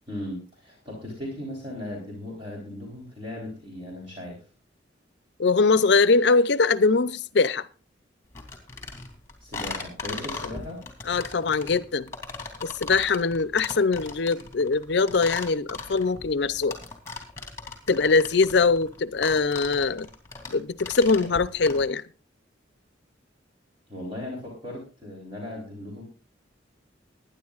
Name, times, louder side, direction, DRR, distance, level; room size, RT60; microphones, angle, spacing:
voice 1, 0.1-4.4 9.4-10.8 23.9-26.0, left 1 dB, 30° right, 3.6 m, -37 dB
voice 2, 5.4-7.7 11.1-12.1 12.6-16.8 17.9-20.1 20.5-22.0, left 4 dB, 65° left, 0.6 m, -22 dB
sound 1, 8.3-21.8, left 4 dB, 15° left, 2.9 m, -38 dB
21.5 x 10.0 x 2.5 m
head